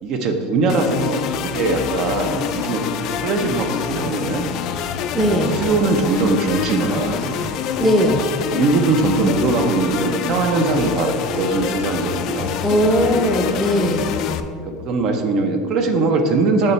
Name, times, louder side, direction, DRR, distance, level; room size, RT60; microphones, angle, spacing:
voice 1, 0.0-4.5 5.2-7.3 8.5-12.5 14.7-16.7, right 3 dB, 45° right, 5 dB, 0.6 m, -21 dB
sound 1, 0.7-14.4, left 8 dB, 45° left, 0.4 m, -26 dB
voice 2, 5.1-5.6 7.8-8.2 12.6-14.2, equal, ahead, 1 dB, 0.6 m, -18 dB
6.9 x 3.3 x 5.5 m, 2.1 s
supercardioid pair, 155°, 0 cm